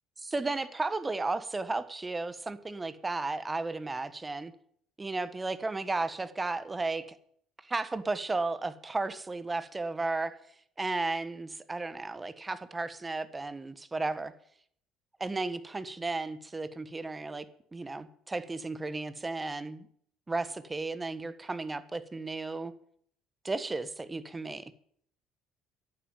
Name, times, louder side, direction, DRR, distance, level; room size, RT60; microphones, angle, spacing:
voice 1, 0.2-4.5 5.0-7.1 7.7-10.4 10.8-14.3 15.2-17.4 17.7-19.9 20.3-22.7 23.4-24.7, right 3 dB, 20° right, 14 dB, 1.4 m, -34 dB
11.5 x 8.7 x 9.1 m, 0.64 s
hypercardioid pair, 60°, 0 cm